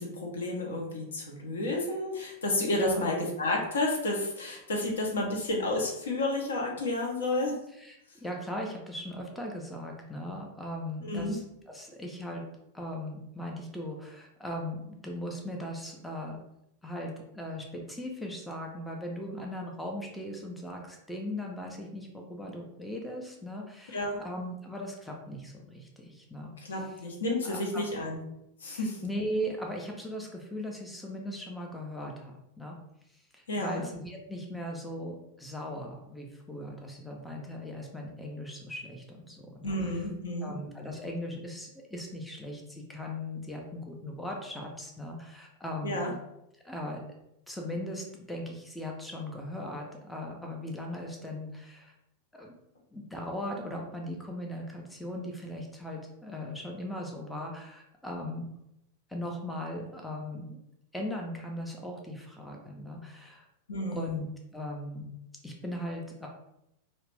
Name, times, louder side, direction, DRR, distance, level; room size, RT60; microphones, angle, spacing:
voice 1, 0.0-7.5 11.0-11.4 23.9-24.2 26.6-28.2 28.6-29.0 33.5-33.8 39.6-40.5 45.8-46.1 63.7-64.2, left 2 dB, 65° left, 0 dB, 0.6 m, -31 dB
voice 2, 2.7-3.1 7.7-12.4 12.7-16.4 16.8-26.9 27.4-27.9 28.7-32.8 33.1-40.1 40.4-46.0 46.6-47.0 47.5-51.9 52.3-52.5 52.9-58.5 59.1-60.6 60.9-63.5 63.9-65.1 65.4-66.3, left 1 dB, 5° left, 0 dB, 0.4 m, -38 dB
2.3 x 2.0 x 3.2 m, 0.82 s
figure-of-eight pair, 90°, 0 cm